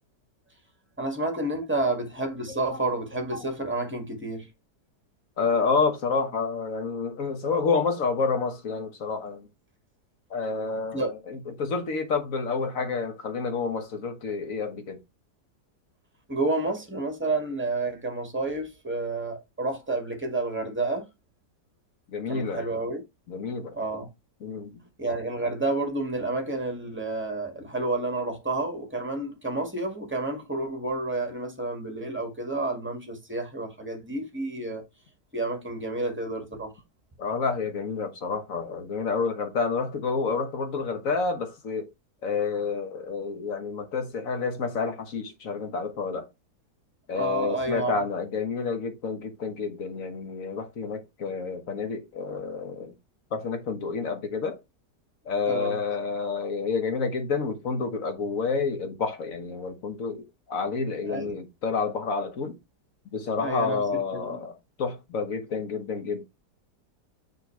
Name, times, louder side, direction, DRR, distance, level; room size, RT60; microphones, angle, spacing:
voice 1, 1.0-4.5 10.9-11.1 16.3-21.1 22.3-23.0 23.7-24.1 25.0-34.8 35.3-36.7 47.1-47.9 55.5-55.7 61.1-61.4 63.4-64.4, right 2 dB, 5° right, 2.0 m, -30 dB
voice 2, 5.4-9.5 10.3-15.0 22.1-22.6 23.3-23.8 24.4-24.8 37.2-41.9 42.2-46.3 47.1-53.0 53.3-54.6 55.2-62.6 63.1-66.2, left 4 dB, 55° left, 1.6 m, -29 dB
6.4 x 5.3 x 3.3 m
omnidirectional pair, 1.8 m